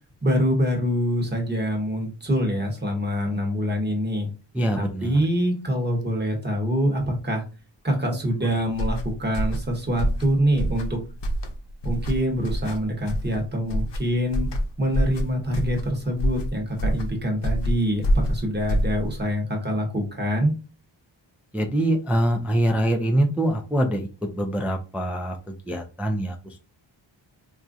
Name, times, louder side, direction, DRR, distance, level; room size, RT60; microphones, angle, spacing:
voice 1, 0.2-4.3 4.8-7.4 7.8-11.0 11.8-14.5 14.8-20.5, equal, 20° right, 1 dB, 1.0 m, -25 dB
voice 2, 4.5-5.2 21.5-24.1 24.3-26.6, right 1 dB, 5° right, 3 dB, 0.3 m, -24 dB
sound 1, 8.7-19.3, equal, 65° left, 0.7 m, -27 dB
4.3 x 2.4 x 2.5 m, 0.32 s
wide cardioid pair, 150°, 46 cm